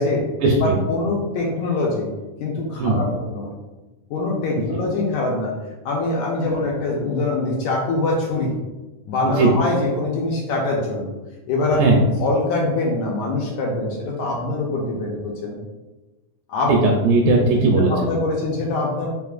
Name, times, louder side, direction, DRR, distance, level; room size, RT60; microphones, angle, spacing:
voice 1, 0.6-2.1 2.4-3.5 4.1-5.5 5.8-8.5 9.1-11.1 11.5-11.9 12.2-15.6 16.5-16.7 17.9-19.1, left 2 dB, 85° left, -2 dB, 1.6 m, -23 dB
voice 2, 16.7-17.9, right 3 dB, 80° right, 0 dB, 2.0 m, -17 dB
4.8 x 3.5 x 2.4 m, 1.1 s
omnidirectional pair, 3.9 m